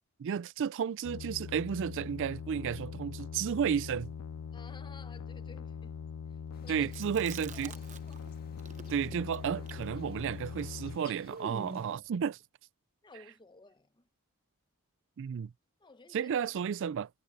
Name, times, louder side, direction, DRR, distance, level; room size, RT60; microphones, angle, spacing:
voice 1, 0.2-4.1 6.7-7.7 8.9-12.4 15.2-15.5 16.1-17.1, right 7 dB, 60° right, 0.3 m, -32 dB
sound 1, 1.0-11.0, left 6 dB, 65° left, 0.4 m, -42 dB
voice 2, 4.5-6.9 7.5-8.3 13.0-14.1 15.8-16.3, left 3 dB, 20° left, 0.9 m, -55 dB
sound 2, 6.5-12.0, left 4 dB, 45° left, 1.8 m, -58 dB
Chewing mastication, 6.8-8.3 8.6-12.0, right 3 dB, 35° right, 0.9 m, -47 dB
head